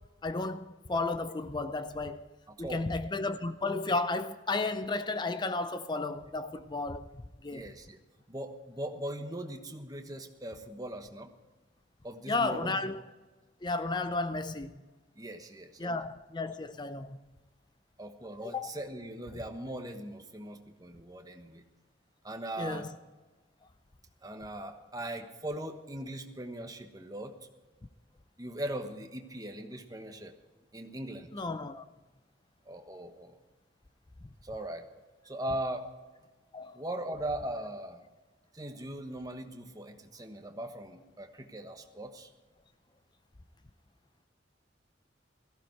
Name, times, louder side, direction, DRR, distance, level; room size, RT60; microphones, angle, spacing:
voice 1, 0.2-2.3 2.6-7.7 12.3-13.0 13.6-14.7 15.8-17.2 18.5-18.7 22.6-22.9 31.3-31.9 36.5-36.8, left 3 dB, 25° left, 0.5 m, -33 dB
voice 2, 2.5-2.9 7.5-8.0 8.3-11.3 12.0-12.8 15.1-15.9 18.0-21.6 22.2-22.9 24.2-27.4 28.4-30.3 30.7-31.3 32.6-33.4 34.4-34.9 35.2-35.9 36.7-38.0 38.5-42.3, right 1 dB, 20° right, 1.2 m, -40 dB
17.0 x 15.0 x 4.6 m
head